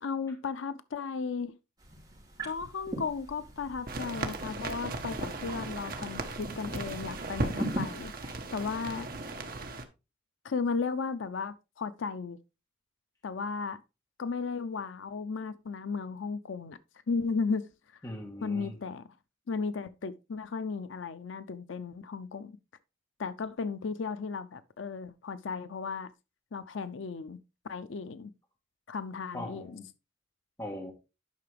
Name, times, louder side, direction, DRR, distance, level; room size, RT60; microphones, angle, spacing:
voice 1, 0.0-1.6 2.4-8.1 8.5-9.1 10.4-12.4 13.2-13.8 14.2-16.8 17.1-17.7 18.4-19.0 19.5-22.6 23.2-26.1 26.5-27.4 27.6-28.3 28.9-29.8, left 5 dB, 75° left, 0.5 m, -35 dB
sound 1, 1.8-8.4, right 1 dB, 20° right, 4.4 m, -41 dB
sound 2, 3.9-9.8, right 2 dB, 50° right, 1.1 m, -37 dB
voice 2, 18.0-18.8 29.3-29.9 30.6-30.9, left 1 dB, 20° left, 1.6 m, -40 dB
10.5 x 5.7 x 3.3 m
head